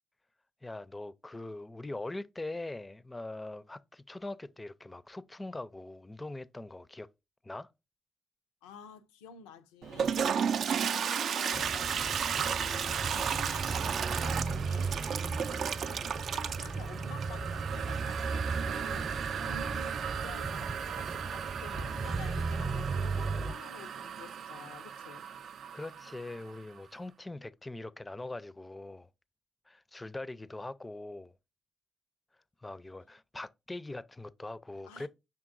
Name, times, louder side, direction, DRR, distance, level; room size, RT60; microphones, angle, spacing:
voice 1, 0.6-7.1 7.4-7.7 25.7-29.1 29.7-31.3 32.6-35.1, left 2 dB, 20° left, 0.4 m, -42 dB
voice 2, 8.6-12.0 12.3-25.2 34.8-35.1, left 7 dB, 85° left, 0.4 m, -51 dB
Toilet flush, 9.8-26.6, right 7 dB, 65° right, 0.3 m, -34 dB
sound 1, 11.5-23.5, right 4 dB, 35° right, 0.7 m, -36 dB
5.6 x 3.7 x 2.5 m
hypercardioid pair, 45°, 0 cm